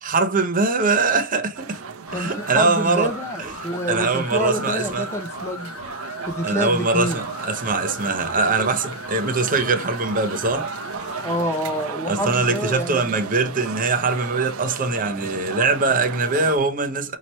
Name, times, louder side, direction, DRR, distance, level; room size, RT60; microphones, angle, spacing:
voice 1, 0.0-1.8 2.1-3.1 3.9-5.1 6.4-10.7 12.1-17.2, right 3 dB, 40° right, 0.8 m, -22 dB
sound 1, 1.5-16.6, right 5 dB, 75° right, 0.7 m, -34 dB
sound 2, 2.1-11.3, left 3 dB, 80° left, 1.1 m, -38 dB
voice 2, 2.1-5.7 6.3-7.2 11.2-13.2, equal, 10° left, 0.7 m, -28 dB
5.8 x 2.9 x 3.0 m
head